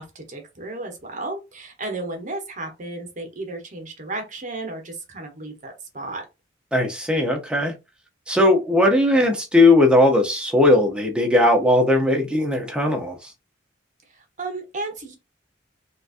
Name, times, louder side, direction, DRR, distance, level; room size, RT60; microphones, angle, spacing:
voice 1, 0.0-6.3 14.1-15.2, right 2 dB, 40° right, 0.9 m, -33 dB
voice 2, 6.7-7.7 8.3-13.3, left 1 dB, 5° right, 0.7 m, -18 dB
3.9 x 2.4 x 2.5 m
head